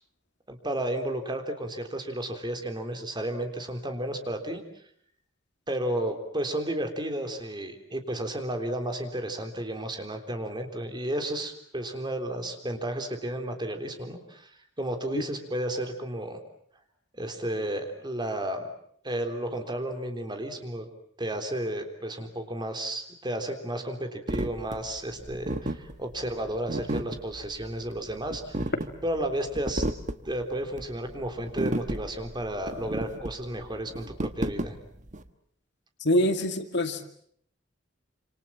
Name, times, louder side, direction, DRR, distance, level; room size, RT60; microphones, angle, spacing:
voice 1, 0.5-4.6 5.7-16.4 17.1-18.6 19.0-20.9 21.2-28.7 29.0-29.8 30.3-34.8, right 1 dB, 25° right, 3.6 m, -32 dB
sound 1, 24.3-35.2, right 1 dB, 40° right, 1.4 m, -33 dB
voice 2, 36.0-37.1, left 1 dB, 65° left, 2.3 m, -25 dB
27.5 x 27.0 x 7.5 m
head